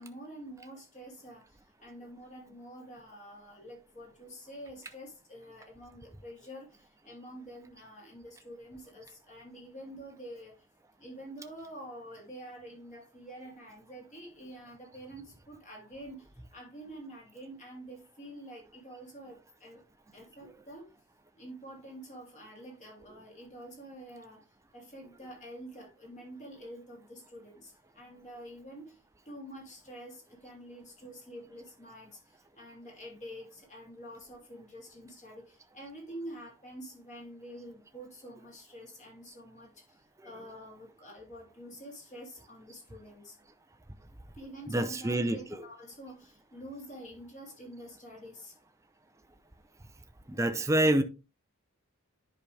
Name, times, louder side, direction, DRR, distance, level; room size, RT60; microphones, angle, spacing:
voice 1, 0.0-10.5 11.0-19.8 20.1-20.9 21.3-24.4 24.7-29.0 29.2-40.0 40.2-43.4 44.3-48.6, equal, 35° left, 2.8 m, -47 dB
voice 2, 44.7-45.4 50.3-51.0, right 1 dB, 15° right, 0.6 m, -26 dB
10.5 x 5.0 x 3.3 m
head